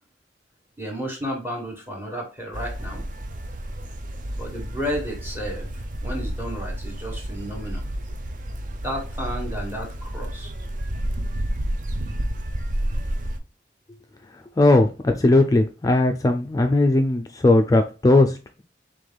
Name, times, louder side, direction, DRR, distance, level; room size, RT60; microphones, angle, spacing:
voice 1, 0.8-3.0 4.3-5.7 6.0-7.8 8.8-10.5, equal, 10° right, 1 dB, 1.3 m, -32 dB
sound 1, 2.5-13.4, right 1 dB, 45° right, 0.5 m, -30 dB
voice 2, 14.6-18.6, left 2 dB, 20° left, 5 dB, 0.4 m, -18 dB
5.0 x 3.6 x 2.2 m, 0.32 s
head